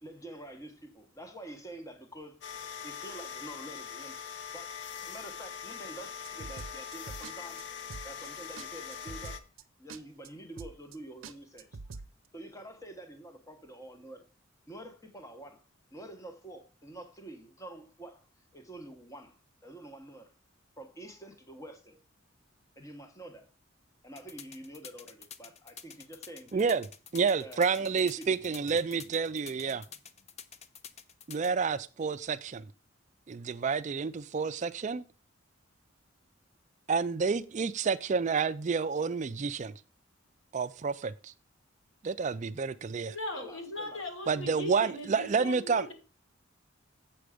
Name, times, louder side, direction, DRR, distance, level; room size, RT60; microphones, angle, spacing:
voice 1, 0.0-4.2 4.5-7.7 8.0-11.7 12.3-14.3 14.7-15.6 15.9-20.3 20.8-22.0 22.8-23.5 24.0-26.6 27.4-29.1 29.4-29.8 43.3-44.0, right 1 dB, 15° left, 1.1 m, -48 dB
sound 1, 2.4-9.4, left 8 dB, 60° left, 0.8 m, -42 dB
sound 2, 6.2-7.3 7.6-7.7 7.9-8.3 8.6-8.7 8.9-9.6 9.9-10.0 10.2-10.3 10.6-11.0 11.2-12.1, right 4 dB, 75° right, 0.6 m, -44 dB
sound 3, 24.2-31.5, left 7 dB, 30° left, 0.5 m, -48 dB
voice 2, 26.5-26.9 27.1-29.8 31.3-32.7 33.3-35.0 36.9-39.8 40.5-41.3 42.0-43.2 44.3-45.9, right 5 dB, 35° right, 0.4 m, -29 dB
voice 3, 43.1-45.9, left 1 dB, 80° left, 2.0 m, -39 dB
7.9 x 6.1 x 4.9 m
head